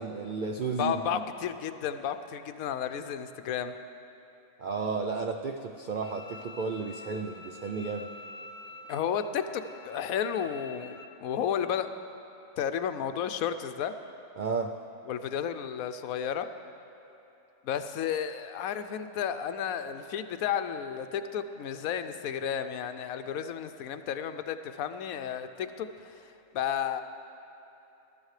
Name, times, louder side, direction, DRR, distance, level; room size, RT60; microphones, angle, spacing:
voice 1, 0.0-1.2 4.6-8.1 14.4-14.8, right 4 dB, 75° right, 5 dB, 0.4 m, -33 dB
voice 2, 0.8-3.7 8.9-11.9 12.6-13.9 15.1-16.5 17.6-25.9 26.5-27.0, left 8 dB, 85° left, 10 dB, 1.0 m, -32 dB
Bowed string instrument, 6.0-11.0, left 3 dB, 55° left, 0.4 m, -47 dB
20.5 x 12.5 x 3.2 m, 2.9 s
omnidirectional pair, 1.5 m